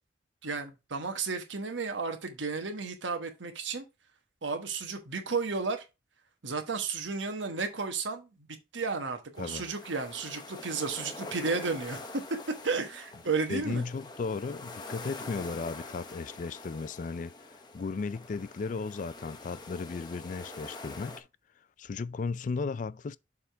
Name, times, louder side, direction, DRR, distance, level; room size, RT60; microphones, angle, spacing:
voice 1, 0.4-3.8 4.4-5.8 6.4-8.3 8.7-12.0 12.6-13.8, right 4 dB, 85° right, 1.2 m, -33 dB
sound 1, 9.4-21.2, left 2 dB, 20° left, 0.8 m, -45 dB
voice 2, 13.5-21.3 21.8-23.2, left 4 dB, 45° left, 0.3 m, -35 dB
7.0 x 3.6 x 4.5 m
head